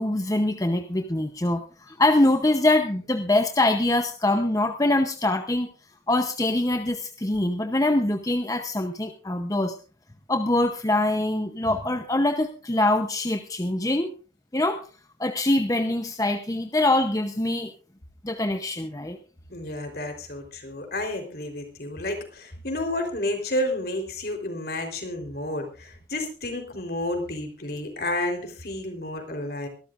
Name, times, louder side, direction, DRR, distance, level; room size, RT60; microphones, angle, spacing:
voice 1, 0.0-5.7 6.1-9.7 10.3-14.1 14.5-14.8 15.2-17.7 18.2-19.2, left 1 dB, 20° left, 6 dB, 0.8 m, -24 dB
voice 2, 19.5-29.7, left 1 dB, 55° left, 4 dB, 3.9 m, -31 dB
24.0 x 13.0 x 2.5 m, 0.37 s
head